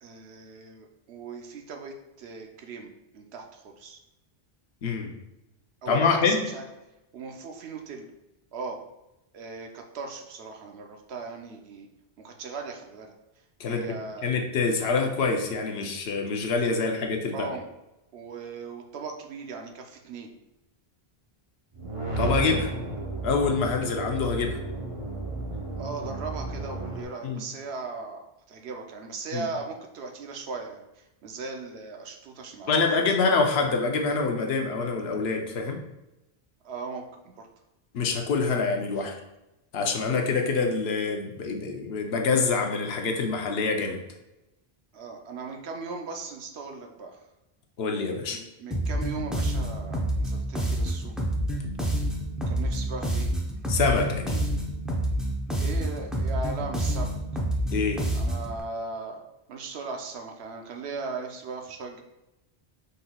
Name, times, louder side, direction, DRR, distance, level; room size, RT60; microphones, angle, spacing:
voice 1, 0.0-4.0 5.8-6.6 7.1-8.1 8.5-8.8 9.3-11.9 12.2-13.1 13.7-14.4 17.3-17.7 18.1-20.3 25.7-28.2 28.5-32.8 36.6-37.5 44.9-47.2 48.3-51.1 52.5-53.3 55.6-57.1 58.1-59.2 59.5-62.0, right 4 dB, 80° right, 3 dB, 0.9 m, -38 dB
voice 2, 4.8-5.1 5.9-6.5 13.6-17.5 22.2-22.7 23.2-24.6 27.2-27.5 29.3-29.5 32.7-35.8 37.9-39.1 39.7-44.0 47.8-48.4 53.7-54.4 57.7-58.0, left 4 dB, 75° left, 3 dB, 0.9 m, -26 dB
sound 1, 21.7-27.0, right 3 dB, 35° right, 0.8 m, -33 dB
sound 2, 48.7-58.6, right 1 dB, ahead, 0.4 m, -28 dB
5.3 x 3.9 x 2.3 m, 0.95 s
omnidirectional pair, 1.1 m